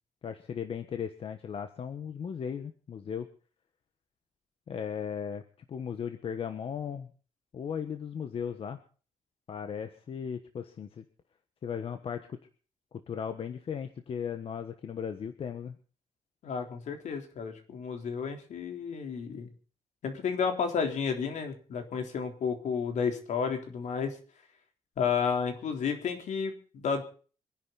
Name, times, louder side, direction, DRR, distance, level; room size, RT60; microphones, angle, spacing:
voice 1, 0.2-3.3 4.7-5.4 5.7-7.1 7.5-8.8 9.5-11.0 11.6-12.4 12.9-15.8, left 7 dB, 45° left, 8 dB, 1.3 m, -36 dB
voice 2, 16.4-19.5 20.0-24.2 25.0-27.0, left 6 dB, 70° left, 5 dB, 3.7 m, -32 dB
25.5 x 11.0 x 4.1 m, 0.40 s
wide cardioid pair, 165°, 13 cm